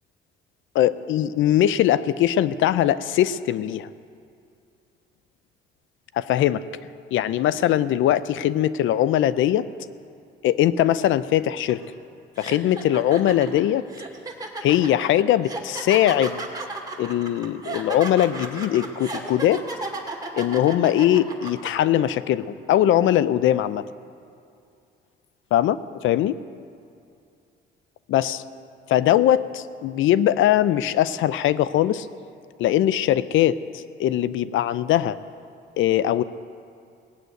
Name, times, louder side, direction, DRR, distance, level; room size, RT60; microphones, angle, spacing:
voice 1, 0.7-3.9 6.1-6.6 7.1-9.6 10.4-11.8 12.4-13.9 14.6-16.4 17.0-19.6 20.3-23.8 25.5-25.8 26.0-26.4 28.1-28.4 28.9-32.1 32.6-35.2 35.8-36.2, left 12 dB, 80° left, 16 dB, 0.5 m, -21 dB
sound 1, 11.7-11.9 12.4-21.7, right 3 dB, 20° right, 2.3 m, -34 dB
18.5 x 8.0 x 9.1 m, 2.4 s
cardioid pair, 90°, 20 cm